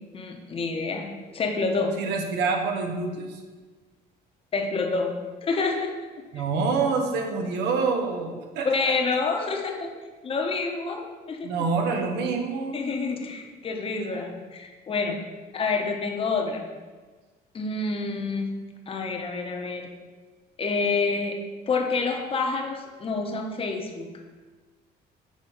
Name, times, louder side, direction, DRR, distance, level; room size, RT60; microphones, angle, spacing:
voice 1, 0.0-2.0 4.5-5.1 5.4-5.9 6.3-6.4 8.6-9.9 10.2-11.5 12.7-15.2 15.5-16.7 17.5-18.5 18.9-19.9 20.6-21.4 21.7-24.1, left 4 dB, 35° left, 2 dB, 0.8 m, -28 dB
voice 2, 2.0-3.4 6.3-8.9 11.4-12.8, right 4 dB, 80° right, 4 dB, 0.9 m, -27 dB
5.1 x 3.7 x 5.4 m, 1.4 s
cardioid pair, 110°, 17 cm